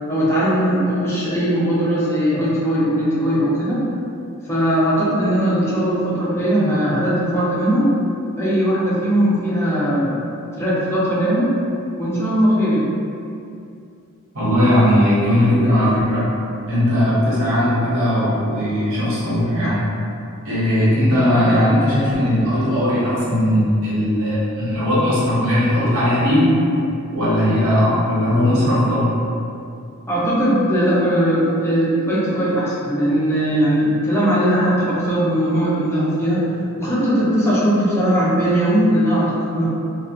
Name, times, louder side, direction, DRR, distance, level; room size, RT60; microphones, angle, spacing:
voice 1, 0.1-3.8 4.5-7.9 8.4-10.2 10.6-11.5 12.0-12.8 30.1-36.5 36.8-39.7, equal, 10° left, -9 dB, 0.6 m, -19 dB
voice 2, 14.3-16.3 16.7-19.9 20.4-26.5 27.1-29.1, left 1 dB, 65° right, -10 dB, 0.9 m, -18 dB
2.7 x 2.1 x 2.4 m, 2.6 s
head